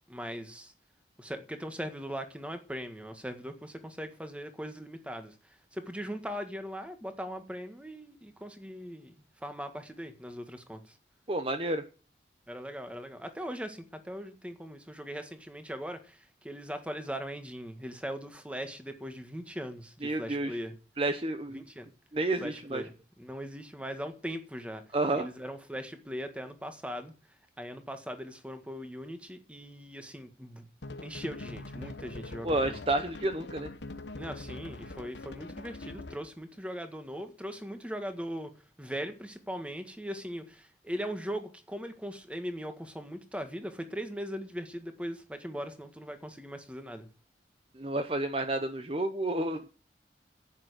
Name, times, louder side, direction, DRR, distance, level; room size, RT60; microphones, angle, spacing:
voice 1, 0.1-0.7 1.2-9.1 9.4-11.0 12.5-20.7 21.5-21.9 22.4-24.8 25.1-27.1 27.6-30.7 31.0-32.8 34.2-38.5 38.8-47.1, equal, 5° right, 1.6 m, -40 dB
voice 2, 11.3-11.8 20.0-20.6 21.0-21.6 22.1-22.8 24.9-25.3 32.4-33.7 47.8-49.7, right 2 dB, 30° right, 0.9 m, -30 dB
sound 1, 30.8-36.3, left 2 dB, 85° left, 1.3 m, -43 dB
10.5 x 9.0 x 8.1 m
head